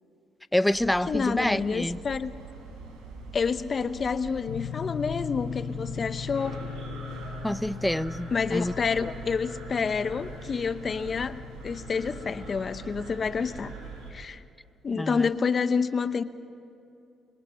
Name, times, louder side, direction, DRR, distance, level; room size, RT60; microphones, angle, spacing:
voice 1, 0.5-2.0 7.4-8.7 14.9-15.3, left 1 dB, 5° left, 16 dB, 0.5 m, -27 dB
sound 1, 0.7-14.1, right 4 dB, 90° right, 5.2 m, -43 dB
voice 2, 1.1-2.3 3.3-6.6 8.3-11.4 11.6-13.7 14.1-14.4 14.8-16.2, left 5 dB, 40° left, 12 dB, 0.9 m, -28 dB
sound 2, 4.5-14.2, left 7 dB, 85° left, 0.7 m, -40 dB
25.5 x 22.0 x 5.8 m, 2.7 s
cardioid pair, 90°, 0 cm